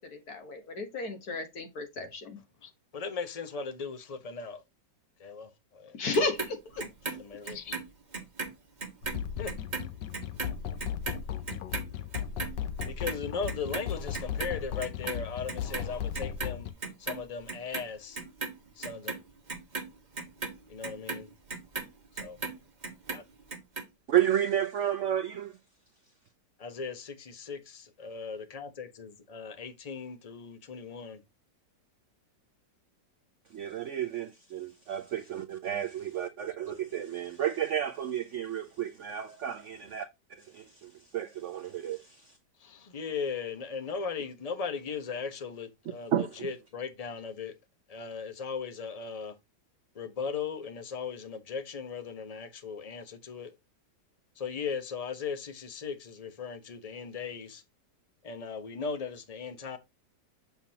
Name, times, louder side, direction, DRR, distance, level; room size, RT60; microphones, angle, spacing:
voice 1, 0.0-2.4 5.9-6.8, left 3 dB, 55° left, 1.8 m, -33 dB
voice 2, 2.6-4.6 5.2-6.0 7.1-7.8 9.4-9.5 12.8-16.7 17.0-18.2 18.8-19.1 20.7-21.3 22.2-22.4 23.1-23.2 26.6-31.2 42.6-47.5 47.9-49.4 49.9-53.5 54.4-57.6 58.2-59.8, left 5 dB, 30° left, 0.8 m, -38 dB
Clock, 6.1-8.5 8.8-15.2 15.5-16.5 16.8-17.8 18.1-22.6 22.8-23.8 24.2-24.3, right 4 dB, 25° right, 1.4 m, -37 dB
sound 1, 9.0-16.7, left 9 dB, 75° left, 1.4 m, -36 dB
voice 3, 24.1-25.5 33.5-40.1 40.5-42.2 46.1-46.3, right 10 dB, 70° right, 0.7 m, -31 dB
7.1 x 5.8 x 2.8 m
omnidirectional pair, 1.9 m